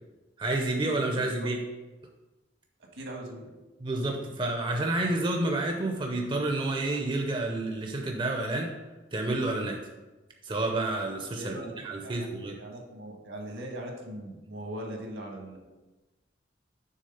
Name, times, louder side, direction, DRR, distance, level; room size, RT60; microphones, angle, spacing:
voice 1, 0.4-1.6 3.8-8.7 9.1-9.8 10.4-11.5 11.8-12.6, right 2 dB, 25° right, 2 dB, 0.5 m, -29 dB
voice 2, 1.2-1.5 2.9-3.5 11.4-11.7 12.0-12.3 12.6-15.6, right 1 dB, 80° right, 1 dB, 1.6 m, -40 dB
6.4 x 3.6 x 5.5 m, 1.1 s
head